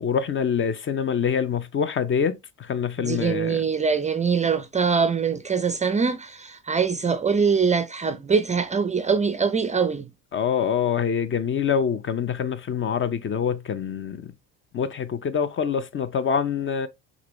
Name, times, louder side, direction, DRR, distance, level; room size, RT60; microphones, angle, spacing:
voice 1, 0.0-3.6 10.3-14.3 14.7-16.9, left 7 dB, 35° left, 0.7 m, -25 dB
voice 2, 3.0-10.1, right 5 dB, 20° right, 0.5 m, -23 dB
6.0 x 2.7 x 3.1 m
hypercardioid pair, 65°, 36 cm